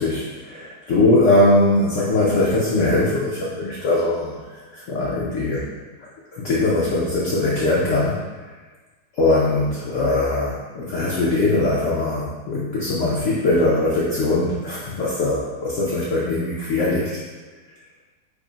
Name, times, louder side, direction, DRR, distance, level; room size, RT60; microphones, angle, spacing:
voice 1, 0.0-5.7 6.3-8.2 9.1-17.2, left 2 dB, 65° left, -6 dB, 0.8 m, -21 dB
3.5 x 2.0 x 3.8 m, 1.3 s
omnidirectional pair, 1.7 m